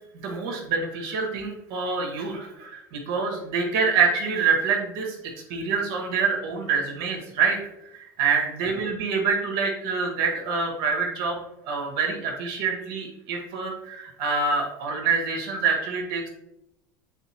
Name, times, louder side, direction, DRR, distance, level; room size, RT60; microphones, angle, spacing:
voice 1, 0.2-5.2 5.5-7.6 7.9-11.4 11.6-16.3, right 5 dB, 60° right, 0 dB, 1.8 m, -26 dB
8.0 x 4.1 x 3.1 m, 0.90 s
hypercardioid pair, 85°, 11 cm